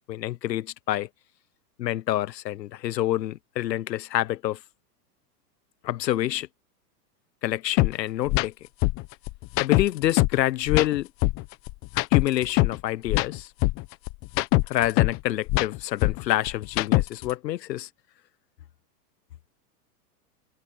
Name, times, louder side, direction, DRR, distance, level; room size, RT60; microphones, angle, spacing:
voice 1, 0.1-1.1 1.8-4.6 5.8-6.5 7.4-8.5 9.6-11.1 12.1-13.5 14.7-17.9, left 14 dB, 80° left, 1.2 m, -27 dB
sound 1, 7.8-7.9 8.3-8.5 8.8-10.4 10.7-12.8 13.1-15.2 15.5-17.3, left 20 dB, 25° left, 1.0 m, -23 dB
supercardioid pair, 150°, 50 cm